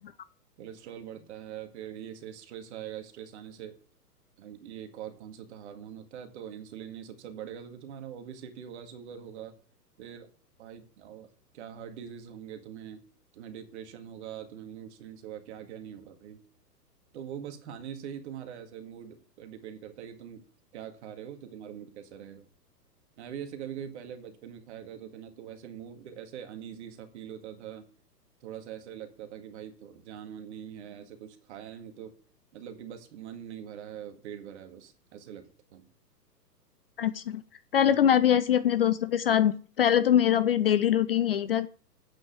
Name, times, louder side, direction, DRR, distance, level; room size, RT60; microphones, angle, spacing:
voice 1, 0.6-3.8 4.4-9.5 10.0-10.3 10.6-11.3 11.5-13.0 13.3-16.4 17.1-20.5 20.7-22.5 23.2-27.9 28.4-32.1 32.5-35.9 37.8-38.0, right 9 dB, 45° right, 6 dB, 2.1 m, -43 dB
voice 2, 37.0-37.4 37.7-41.7, left 10 dB, 35° left, 15 dB, 0.6 m, -23 dB
8.5 x 6.1 x 8.3 m, 0.42 s
figure-of-eight pair, 115°, 49 cm